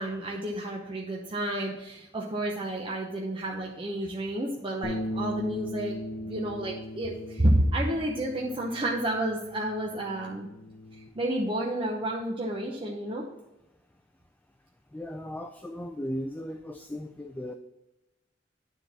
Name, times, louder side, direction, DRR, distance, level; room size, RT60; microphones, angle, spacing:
voice 1, 0.0-6.0 6.2-10.5 10.9-13.3, right 1 dB, 30° right, -2 dB, 0.8 m, -30 dB
sound 1, 4.8-11.1, equal, 35° left, 1.0 m, -38 dB
voice 2, 14.9-17.5, equal, 10° left, 6 dB, 0.3 m, -36 dB
9.5 x 3.9 x 5.8 m, 0.95 s
head